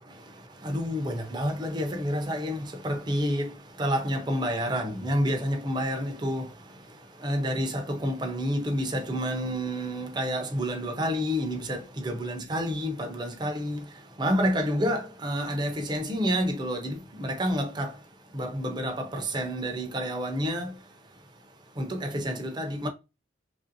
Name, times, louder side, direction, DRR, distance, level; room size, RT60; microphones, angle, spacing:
voice 1, 0.0-22.9, equal, 20° right, 0.5 m, -29 dB
2.9 x 2.5 x 2.6 m
head